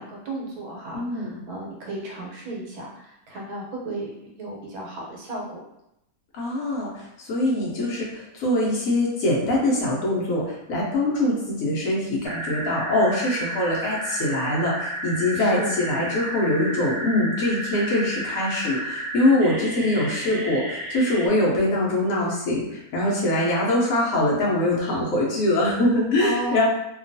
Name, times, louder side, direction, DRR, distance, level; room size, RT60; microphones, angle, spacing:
voice 1, 0.0-5.6 7.7-8.0 15.3-15.8 19.6-19.9 26.2-26.6, right 1 dB, 85° right, -2 dB, 1.3 m, -34 dB
voice 2, 0.9-1.4 6.3-26.6, left 1 dB, 70° left, -4 dB, 1.1 m, -23 dB
sound 1, 12.2-21.3, right 1 dB, 65° right, 0.9 m, -32 dB
2.8 x 2.3 x 2.6 m, 0.83 s
omnidirectional pair, 1.6 m